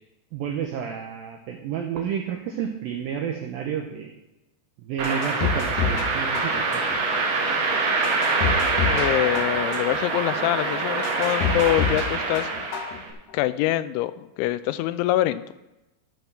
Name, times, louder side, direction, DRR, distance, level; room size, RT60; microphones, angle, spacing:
voice 1, 0.3-4.1 4.8-6.9, right 8 dB, 90° right, 3 dB, 2.0 m, -30 dB
sound 1, 5.0-6.1 6.3-7.0 7.5-7.6 8.0-9.1 9.3-10.0 10.5-10.6 11.0-12.1 12.3-13.0 13.3-13.4, left 6 dB, 70° left, 2.7 m, -27 dB
sound 2, 5.0-13.1, right 3 dB, 65° right, 3.8 m, -25 dB
voice 2, 8.9-12.5 13.3-15.4, left 14 dB, 90° left, 14 dB, 2.9 m, -24 dB
13.5 x 5.4 x 6.0 m, 0.96 s
omnidirectional pair, 5.3 m